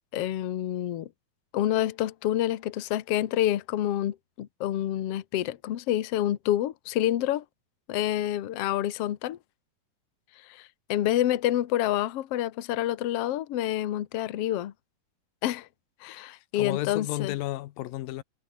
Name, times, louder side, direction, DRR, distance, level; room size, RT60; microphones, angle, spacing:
voice 1, 0.1-1.1 1.5-7.4 7.9-9.4 10.5-14.7 15.4-15.7 16.0-17.3, left 12 dB, 60° left, 1.8 m, -28 dB
voice 2, 16.3-18.2, left 16 dB, 85° left, 2.6 m, -33 dB
omnidirectional pair, 4.1 m